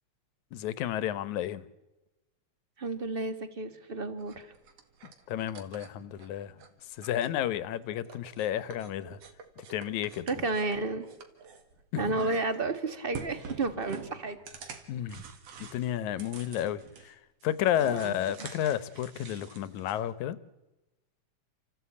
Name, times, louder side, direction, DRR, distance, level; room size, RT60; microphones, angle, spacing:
voice 1, 0.5-1.7 5.3-6.6 6.9-9.2 9.6-10.4 11.9-12.2 14.9-15.2 15.6-20.4, left 11 dB, 80° left, 2.3 m, -32 dB
voice 2, 2.8-4.5 10.3-11.1 12.0-14.4 17.8-18.1, right 3 dB, 30° right, 1.1 m, -32 dB
sound 1, 4.2-6.7 7.0-7.7 8.1-11.8 12.1-12.8 13.1-17.1 17.4-20.0, right 6 dB, 60° right, 2.9 m, -47 dB
29.5 x 15.0 x 8.5 m
omnidirectional pair, 3.3 m